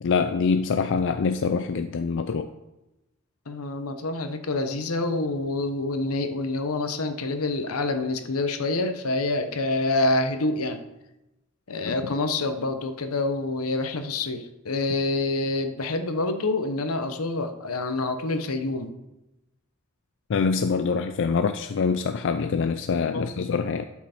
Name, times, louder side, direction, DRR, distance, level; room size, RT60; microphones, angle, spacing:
voice 1, 0.0-2.5 11.9-12.0 20.3-23.8, left 5 dB, 60° left, 8 dB, 0.4 m, -25 dB
voice 2, 3.5-10.8 11.7-18.9 23.1-23.3, left 2 dB, 85° left, 7 dB, 1.0 m, -27 dB
12.0 x 5.9 x 4.4 m, 0.94 s
head